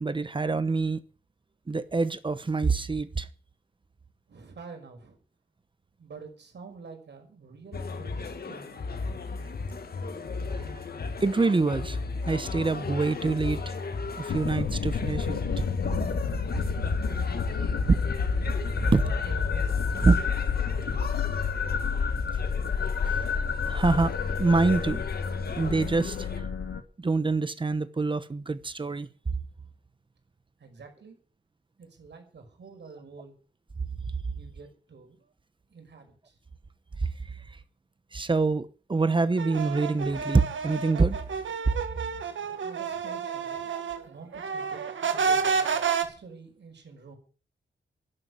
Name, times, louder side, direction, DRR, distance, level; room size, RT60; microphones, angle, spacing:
voice 1, 0.0-1.0 1.7-3.3 10.6-10.7 11.2-12.0 12.3-13.7 14.2-15.4 18.9-19.0 20.0-20.1 23.7-24.1 24.4-25.0 25.6-26.3 27.0-29.1 38.1-41.2 43.7-43.8, right 3 dB, 25° right, 1.1 m, -25 dB
voice 2, 4.3-5.2 6.0-8.8 17.0-18.0 18.8-21.3 30.6-31.2 31.8-33.3 34.3-35.3 35.7-36.4 42.6-43.7 44.0-44.8 45.1-45.7 46.0-47.2, right 4 dB, 65° right, 6.0 m, -48 dB
sound 1, 7.7-26.4, left 4 dB, 55° left, 2.0 m, -35 dB
sound 2, 14.3-26.8, left 6 dB, 80° left, 2.0 m, -29 dB
sound 3, 39.4-44.0 44.3-46.0, right 6 dB, 90° right, 1.9 m, -30 dB
12.0 x 12.0 x 8.3 m
wide cardioid pair, 175°, 19 cm